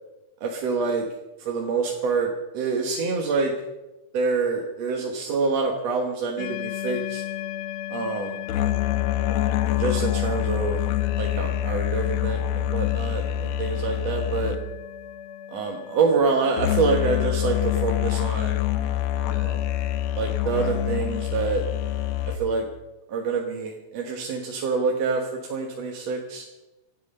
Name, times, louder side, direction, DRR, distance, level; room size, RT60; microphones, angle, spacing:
voice 1, 0.4-1.1 1.4-3.5 4.1-7.2 7.9-8.4 9.6-10.8 11.2-14.6 15.5-18.6 19.3-19.6 20.2-21.6 22.2-22.7 23.1-26.5, right 4 dB, 60° right, 1 dB, 2.1 m, -26 dB
sound 1, 6.4-22.4, left 12 dB, 80° left, 1.6 m, -26 dB
26.5 x 9.2 x 5.4 m, 1.0 s
omnidirectional pair, 4.0 m